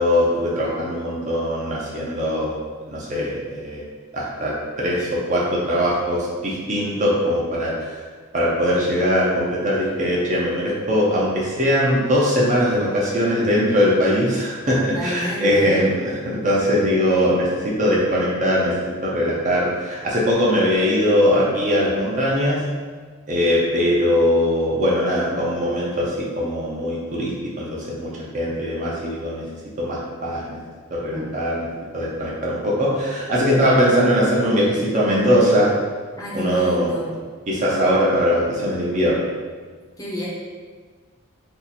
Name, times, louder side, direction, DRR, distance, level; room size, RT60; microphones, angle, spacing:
voice 1, 0.0-2.6 2.9-3.8 4.1-7.9 8.3-18.7 19.0-22.6 23.3-29.4 29.8-30.6 30.9-31.7 31.9-35.7 36.3-36.9 37.5-39.3, equal, 35° right, -5 dB, 0.5 m, -21 dB
voice 2, 14.8-15.8 31.1-31.3 36.2-37.1 40.0-40.3, left 1 dB, 15° left, -7 dB, 0.6 m, -30 dB
2.7 x 2.4 x 4.1 m, 1.5 s
head